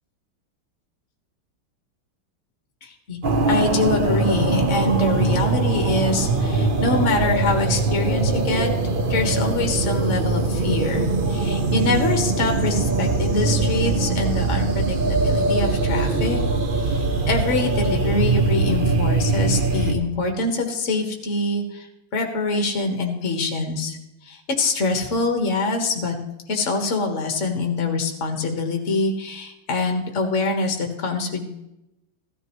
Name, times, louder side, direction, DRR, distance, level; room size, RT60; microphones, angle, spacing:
voice 1, 2.8-3.2 3.5-8.7 9.1-16.4 16.7-21.9 22.1-24.0 24.2-26.2 26.5-31.5, left 3 dB, 40° left, 3 dB, 1.7 m, -24 dB
sound 1, 3.2-19.9, right 3 dB, 85° right, 0.4 m, -22 dB
16.0 x 13.0 x 3.1 m, 0.89 s
omnidirectional pair, 2.3 m